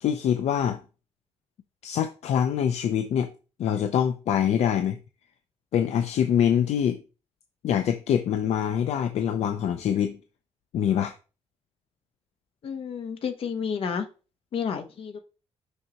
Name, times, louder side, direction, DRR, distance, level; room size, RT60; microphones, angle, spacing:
voice 1, 0.0-0.8 1.8-3.3 3.6-5.0 5.7-7.0 7.6-10.2 10.7-11.1, left 9 dB, 70° left, 0.5 m, -24 dB
voice 2, 12.6-14.1 14.5-15.2, left 6 dB, 55° left, 1.0 m, -30 dB
6.4 x 5.4 x 2.9 m
wide cardioid pair, 160°, 12 cm